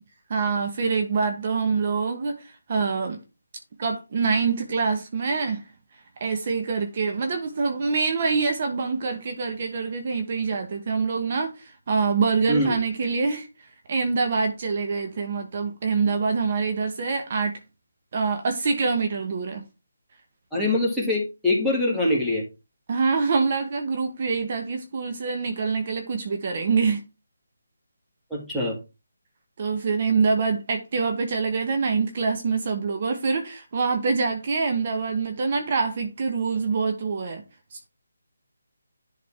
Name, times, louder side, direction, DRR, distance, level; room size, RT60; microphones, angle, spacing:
voice 1, 0.3-2.3 2.7-3.2 3.8-5.6 6.2-13.5 13.9-17.6 18.1-19.6 22.9-27.0 29.6-37.4 37.7-37.9, right 4 dB, 40° right, 1.2 m, -25 dB
voice 2, 12.5-12.8 20.5-22.4 28.3-28.8, left 1 dB, ahead, 1.9 m, -23 dB
10.5 x 3.9 x 3.6 m
figure-of-eight pair, 165°, 0 cm